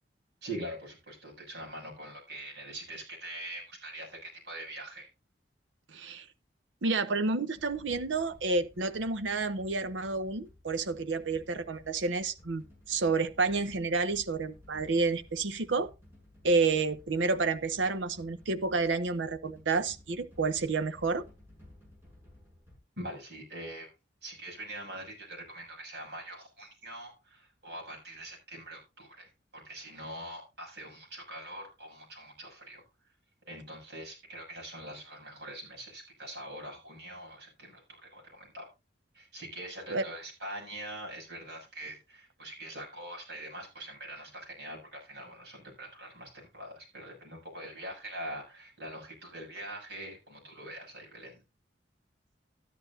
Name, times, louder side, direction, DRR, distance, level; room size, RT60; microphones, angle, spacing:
voice 1, 0.4-5.1 23.0-23.9 24.2-29.3 29.5-32.8 33.5-38.7 39.1-51.4, right 1 dB, 60° right, 6.9 m, -43 dB
voice 2, 5.9-6.3 6.8-15.9 16.4-21.2 39.9-40.0, right 3 dB, 85° right, 0.8 m, -30 dB
sound 1, 7.5-22.8, left 1 dB, 10° right, 6.6 m, -56 dB
13.0 x 11.0 x 2.7 m
head